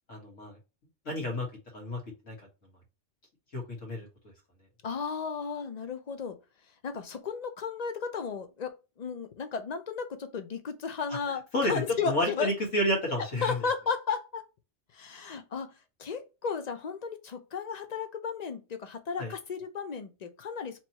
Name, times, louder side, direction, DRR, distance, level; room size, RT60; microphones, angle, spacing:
voice 1, 0.1-0.6 1.1-1.5 1.7-2.0 2.3-2.4 3.5-4.1 11.5-13.6 19.2-19.3, left 1 dB, 75° left, 1.8 m, -30 dB
voice 2, 4.8-6.4 6.8-12.5 13.2-14.4 14.9-15.7 16.0-20.8, left 5 dB, 45° left, 0.5 m, -34 dB
4.5 x 2.9 x 2.8 m
omnidirectional pair, 1.3 m